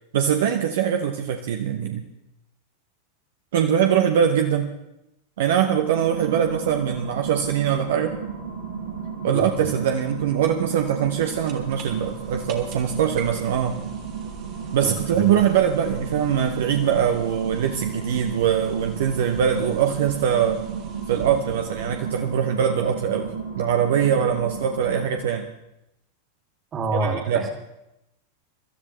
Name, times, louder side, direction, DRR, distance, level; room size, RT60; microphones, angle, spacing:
voice 1, 0.1-2.0 3.5-4.7 5.4-8.1 9.2-13.8 14.7-20.6 21.1-23.3 23.6-25.5 27.0-27.5, right 8 dB, 55° right, 6 dB, 0.8 m, -22 dB
sound 1, 5.7-25.5, right 6 dB, 80° right, 4.6 m, -34 dB
sound 2, 10.9-22.6, right 7 dB, 40° right, 1.8 m, -42 dB
voice 2, 14.8-15.4 26.7-27.2, right 2 dB, 25° right, 4 dB, 2.3 m, -27 dB
24.5 x 13.0 x 3.2 m, 0.87 s
figure-of-eight pair, 90°, 0 cm